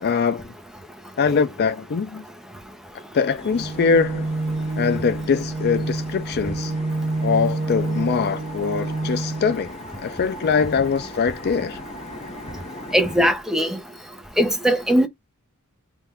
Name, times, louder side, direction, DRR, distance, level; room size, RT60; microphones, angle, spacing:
voice 1, 0.0-0.5 1.2-2.2 3.1-4.3 4.8-6.7 7.2-11.8, left 5 dB, 45° left, 0.4 m, -22 dB
sound 1, 3.4-13.3, left 1 dB, 30° left, 1.0 m, -39 dB
sound 2, 3.5-9.5, right 2 dB, 30° right, 0.3 m, -27 dB
voice 2, 12.9-13.8 14.4-15.1, equal, ahead, 0.7 m, -19 dB
3.6 x 2.5 x 4.3 m
head